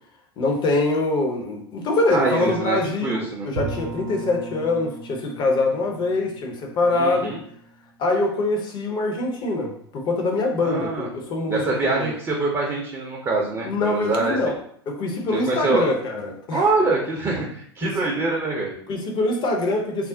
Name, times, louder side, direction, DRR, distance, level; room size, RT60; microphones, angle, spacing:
voice 1, 0.4-7.3 8.0-11.6 11.9-12.1 13.6-14.5 14.9-16.9 17.8-17.9 18.9-20.1, left 2 dB, 35° left, 1 dB, 0.7 m, -24 dB
voice 2, 2.1-3.5 6.9-7.4 10.6-11.1 11.5-14.4 15.3-15.9 16.5-18.7, right 3 dB, 20° right, -2 dB, 0.6 m, -24 dB
Bowed string instrument, 3.6-8.4, right 3 dB, 70° right, 0.4 m, -37 dB
2.4 x 2.1 x 3.6 m, 0.63 s
figure-of-eight pair, 85°, 13 cm